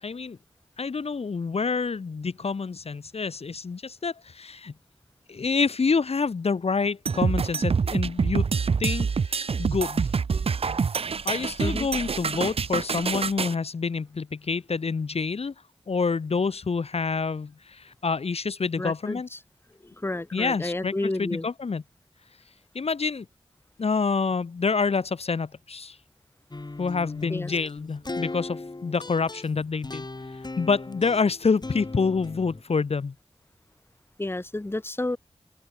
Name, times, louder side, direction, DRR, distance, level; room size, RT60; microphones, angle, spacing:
voice 1, 0.0-0.4 0.8-4.7 5.3-8.5 8.8-10.0 11.2-15.5 15.9-19.3 20.3-21.8 22.7-23.3 23.8-26.0 26.8-33.1, left 4 dB, 65° left, 0.7 m, -27 dB
sound 1, 7.1-13.5, right 5 dB, 60° right, 0.4 m, -26 dB
voice 2, 18.8-19.4 19.8-21.5 27.3-27.5 34.2-35.2, left 2 dB, 20° left, 0.9 m, -31 dB
sound 2, 26.5-32.6, left 2 dB, 40° left, 1.8 m, -38 dB
wide cardioid pair, 55°, 11 cm